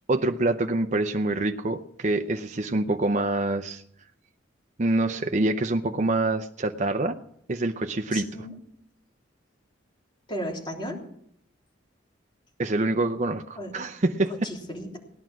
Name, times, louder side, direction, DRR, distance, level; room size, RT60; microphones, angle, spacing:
voice 1, 0.1-3.8 4.8-7.2 7.5-8.3 12.6-14.5, right 2 dB, 40° right, 6 dB, 0.6 m, -26 dB
voice 2, 8.1-8.5 10.3-11.0 13.6-13.7 14.3-15.0, equal, 25° left, -1 dB, 3.5 m, -34 dB
17.5 x 11.5 x 6.1 m, 0.68 s
head